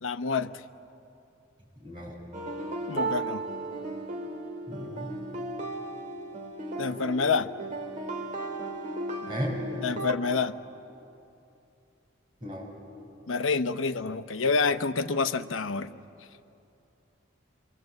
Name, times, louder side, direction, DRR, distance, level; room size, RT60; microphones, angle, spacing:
voice 1, 0.0-0.5 2.9-3.4 6.8-7.5 9.8-10.5 13.3-15.9, left 4 dB, 75° left, 10 dB, 0.8 m, -27 dB
voice 2, 1.8-2.2 4.7-5.1 9.3-9.6 12.4-12.7, equal, 25° right, -3 dB, 6.6 m, -35 dB
sound 1, 2.3-10.1, right 2 dB, 40° right, 2.0 m, -35 dB
27.5 x 23.0 x 7.9 m, 2.7 s
head